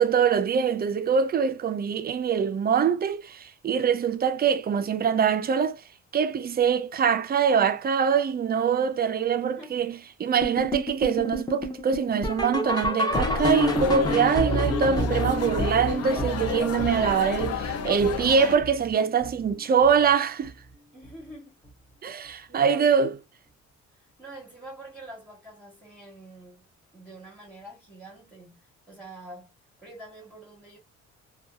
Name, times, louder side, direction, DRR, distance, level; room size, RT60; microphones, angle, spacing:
voice 1, 0.0-5.8 6.1-20.5 22.0-23.1, right 7 dB, 30° right, 0.4 m, -24 dB
sound 1, 10.4-19.5 19.8-20.1 20.4-20.5 21.0-21.1 21.6-21.7, equal, 15° left, 0.7 m, -30 dB
sound 2, 13.1-18.6, left 7 dB, 55° left, 0.5 m, -32 dB
voice 2, 20.9-21.5 22.0-23.1 23.9-28.6 28.9-29.5 29.8-30.8, right 1 dB, 5° right, 1.2 m, -46 dB
2.7 x 2.3 x 2.2 m
cardioid pair, 90°, 30 cm